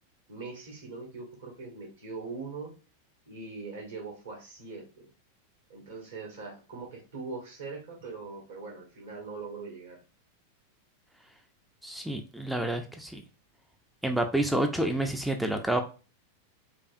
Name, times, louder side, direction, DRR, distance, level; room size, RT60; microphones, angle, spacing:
voice 1, 0.3-2.7 3.3-4.9 5.7-10.0 14.8-15.0, right 4 dB, 65° right, 0 dB, 1.5 m, -41 dB
voice 2, 11.8-13.2 14.0-15.8, right 1 dB, 5° right, 5 dB, 0.4 m, -29 dB
4.9 x 2.3 x 2.4 m, 0.34 s
figure-of-eight pair, 90°, 0 cm